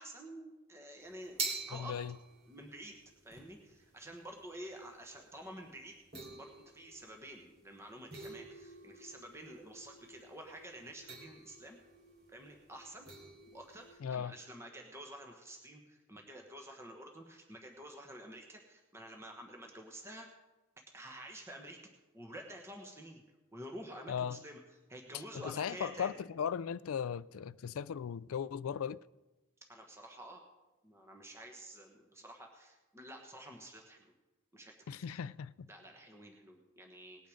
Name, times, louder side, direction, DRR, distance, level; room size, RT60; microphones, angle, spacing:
voice 1, 0.0-2.0 2.5-3.0 3.2-6.0 6.3-11.8 12.3-13.1 13.5-20.3 20.9-21.8 22.1-23.2 23.5-24.6 24.9-26.1 29.7-30.4 30.8-34.1 34.5-35.0 35.7-37.3, right 1 dB, 15° right, 1.3 m, -50 dB
sound 1, 1.0-14.0, right 3 dB, 50° right, 3.2 m, -47 dB
voice 2, 1.7-2.1 14.0-14.3 24.1-24.4 25.3-29.0 34.9-35.7, left 7 dB, 90° left, 0.4 m, -37 dB
19.0 x 9.2 x 5.1 m
head